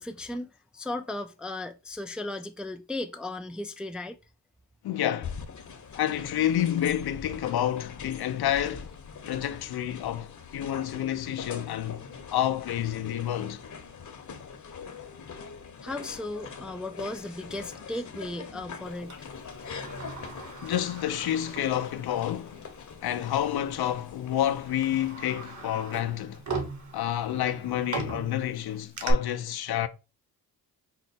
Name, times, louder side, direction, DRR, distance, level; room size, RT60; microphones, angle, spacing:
voice 1, 0.0-4.2 15.8-19.3, left 2 dB, ahead, 0.3 m, -36 dB
voice 2, 4.8-5.4 6.0-8.9 9.3-12.0 12.3-13.6 20.6-22.6 23.0-26.4 26.9-29.9, left 11 dB, 65° left, 0.5 m, -29 dB
sound 1, 5.2-25.1, left 6 dB, 45° left, 0.9 m, -43 dB
Sliding door, 19.1-22.3 22.7-22.8 23.7-23.9 24.4-29.1, right 4 dB, 45° right, 1.1 m, -39 dB
4.4 x 2.1 x 4.1 m
cardioid pair, 75°, 41 cm